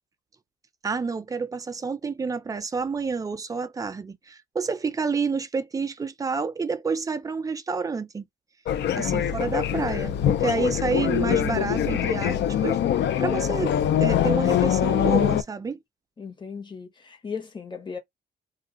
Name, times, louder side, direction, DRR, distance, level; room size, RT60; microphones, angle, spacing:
voice 1, 0.8-8.2 8.9-12.8 13.2-15.8, right 4 dB, 20° right, 0.4 m, -29 dB
sound 1, 8.7-15.4, left 10 dB, 65° left, 0.5 m, -23 dB
voice 2, 16.2-18.0, left 5 dB, 25° left, 0.8 m, -37 dB
2.4 x 2.3 x 3.7 m
cardioid pair, 145°, 19 cm